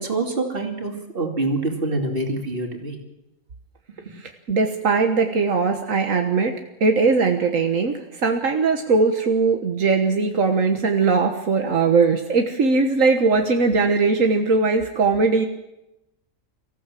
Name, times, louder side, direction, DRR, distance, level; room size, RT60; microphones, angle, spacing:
voice 1, 0.0-3.0, right 2 dB, 45° right, 2 dB, 2.9 m, -26 dB
voice 2, 4.1-6.5 6.8-15.5, right 4 dB, 80° right, 4 dB, 1.7 m, -20 dB
24.0 x 15.0 x 7.6 m, 0.92 s
omnidirectional pair, 1.4 m